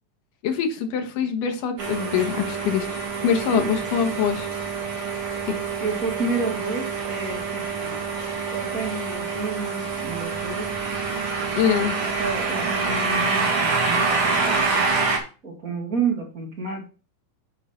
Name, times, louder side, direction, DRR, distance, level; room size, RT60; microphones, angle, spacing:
voice 1, 0.4-4.5 5.5-5.6 11.6-12.0, left 7 dB, 80° left, 5 dB, 3.0 m, -24 dB
sound 1, 1.8-15.2, right 4 dB, 45° right, 2.5 m, -26 dB
voice 2, 5.8-8.0 8.5-10.7 11.8-14.9 15.4-16.9, right 4 dB, 30° right, 0 dB, 2.3 m, -30 dB
8.3 x 4.9 x 5.9 m, 0.35 s
omnidirectional pair, 3.8 m